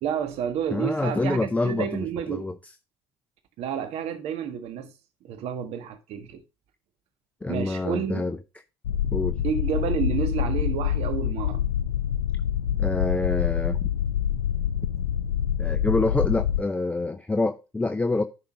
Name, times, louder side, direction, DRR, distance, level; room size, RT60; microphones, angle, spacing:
voice 1, 0.0-2.5 3.6-4.9 5.2-6.4 7.5-8.2 9.4-11.6, right 8 dB, 60° right, 1.5 m, -30 dB
voice 2, 0.7-2.6 7.4-8.4 9.1-9.4 12.8-13.9 15.6-18.2, left 3 dB, 10° left, 0.5 m, -26 dB
sound 1, 8.8-16.6, left 10 dB, 90° left, 0.6 m, -26 dB
10.5 x 3.8 x 4.9 m
hypercardioid pair, 70°, 12 cm